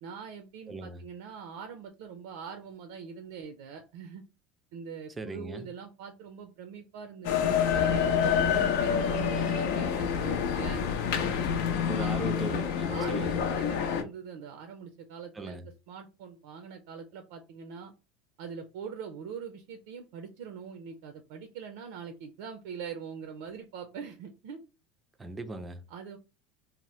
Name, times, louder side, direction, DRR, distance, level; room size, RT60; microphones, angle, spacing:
voice 1, 0.0-4.2 4.7-10.8 11.2-11.4 12.0-12.1 12.9-17.9 18.4-24.6 25.9-26.2, right 6 dB, 75° right, 0.5 m, -43 dB
voice 2, 0.7-1.0 5.2-5.7 11.8-13.4 15.3-15.7 25.2-25.8, right 2 dB, 15° right, 0.4 m, -38 dB
sound 1, 7.2-14.0, left 7 dB, 70° left, 0.6 m, -27 dB
2.8 x 2.0 x 3.1 m
supercardioid pair, 150°, 0 cm